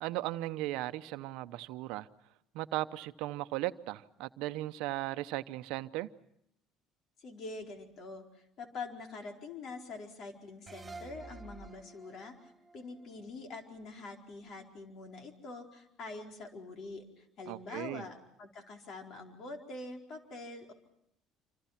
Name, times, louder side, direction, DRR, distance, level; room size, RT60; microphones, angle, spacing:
voice 1, 0.0-2.1 2.5-6.1 17.5-18.0, right 17 dB, 75° right, 0.8 m, -37 dB
voice 2, 7.2-20.7, left 3 dB, 60° left, 4.5 m, -45 dB
sound 1, 10.7-14.0, right 4 dB, 20° right, 2.8 m, -51 dB
27.5 x 25.5 x 5.9 m
supercardioid pair, 85°, 0 cm